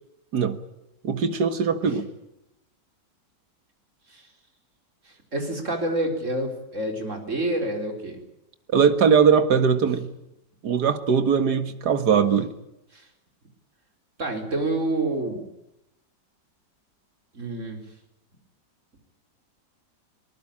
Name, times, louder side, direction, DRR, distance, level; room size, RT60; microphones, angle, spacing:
voice 1, 1.0-2.1 8.7-10.1 10.6-12.5, right 6 dB, 60° right, 10 dB, 2.2 m, -20 dB
voice 2, 5.3-8.2 12.9-13.0 14.2-15.4 17.3-17.8, right 1 dB, 40° right, 3 dB, 4.6 m, -28 dB
23.0 x 20.0 x 8.7 m, 0.85 s
omnidirectional pair, 2.0 m